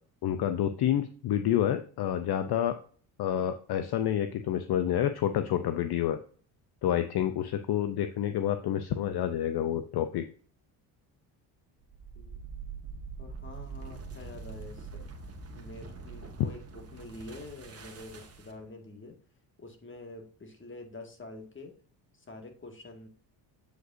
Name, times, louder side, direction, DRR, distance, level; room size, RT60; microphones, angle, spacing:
voice 1, 0.2-2.7 3.2-6.2 6.8-10.2, left 10 dB, 55° left, 10 dB, 0.7 m, -28 dB
sound 1, 11.8-18.7, right 4 dB, 30° right, 1.5 m, -44 dB
voice 2, 12.1-12.5 13.2-15.1 15.5-19.2 19.6-21.7 22.1-23.1, left 2 dB, 25° left, 3 dB, 1.9 m, -46 dB
7.7 x 5.1 x 2.6 m, 0.44 s
supercardioid pair, 75°, 47 cm